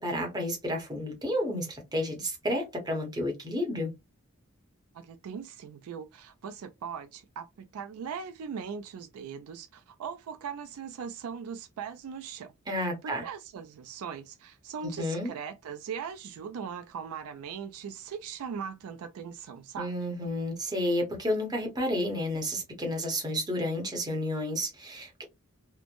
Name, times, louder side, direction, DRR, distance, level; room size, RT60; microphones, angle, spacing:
voice 1, 0.0-3.9 12.7-13.3 14.8-15.3 19.8-25.2, left 1 dB, 20° right, 0.9 m, -31 dB
voice 2, 4.9-19.9, right 7 dB, 70° right, 0.3 m, -40 dB
3.0 x 2.0 x 2.5 m
head